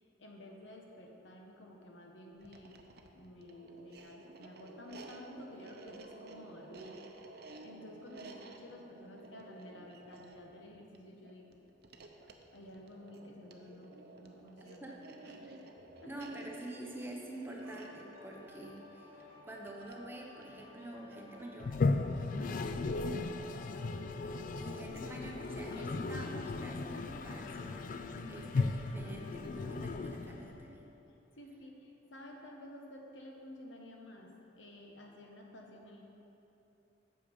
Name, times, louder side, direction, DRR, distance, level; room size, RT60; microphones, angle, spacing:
voice 1, 0.0-2.8 3.1-7.4 7.6-11.6 12.5-14.9 15.3-15.5 16.0-16.3 22.4-22.8 23.2-23.8 28.0-28.4 31.4-36.0, left 1 dB, 85° left, 1 dB, 1.2 m, -52 dB
sound 1, 2.3-21.6, right 2 dB, 55° right, 0.7 m, -54 dB
voice 2, 16.1-21.8 22.5-22.7 24.6-27.9 28.3-30.9, right 1 dB, 10° right, -1 dB, 0.9 m, -47 dB
sound 2, 17.4-31.2 31.6-31.7, left 4 dB, 10° left, 2.2 m, -57 dB
Toilet flush, 21.6-30.7, left 3 dB, 45° left, 0.3 m, -36 dB
8.3 x 6.8 x 5.3 m, 2.9 s
head